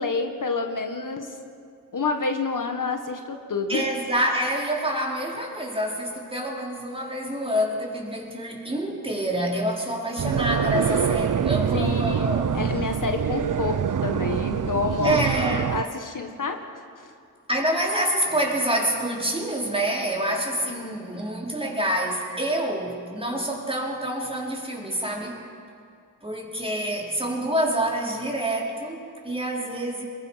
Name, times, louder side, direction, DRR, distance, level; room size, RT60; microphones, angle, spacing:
voice 1, 0.0-1.4 1.9-3.9 11.7-15.2 15.5-16.6 17.0-17.1 20.7-21.0, left 4 dB, 65° left, 5 dB, 1.7 m, -28 dB
voice 2, 3.7-12.7 15.0-15.8 17.5-25.4 26.2-30.0, right 1 dB, 15° right, -2 dB, 4.8 m, -27 dB
sound 1, 10.2-15.8, right 8 dB, 65° right, 0.6 m, -25 dB
28.0 x 22.0 x 5.9 m, 2.4 s
wide cardioid pair, 80°, 34 cm